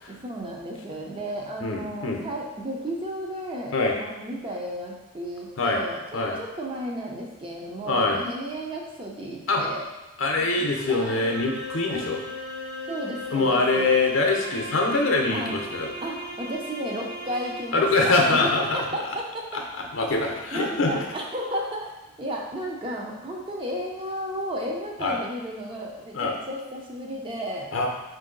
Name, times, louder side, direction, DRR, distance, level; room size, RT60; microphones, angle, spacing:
voice 1, 0.1-3.7 4.0-9.8 10.6-11.2 11.9-12.1 12.9-13.9 15.3-15.6 16.0-19.4 20.5-21.9 22.2-27.7, equal, 25° right, -1 dB, 0.5 m, -33 dB
voice 2, 1.6-2.3 3.7-4.0 5.6-5.8 6.1-6.4 7.8-8.2 9.5-9.6 10.2-12.2 13.3-15.9 17.7-18.8 19.7-21.0 25.0-25.2 26.1-26.3 27.7-27.9, left 3 dB, 60° left, 1 dB, 0.6 m, -24 dB
sound 1, 10.7-18.0, equal, 60° right, 1.4 m, -37 dB
4.5 x 2.6 x 3.8 m, 1.0 s
head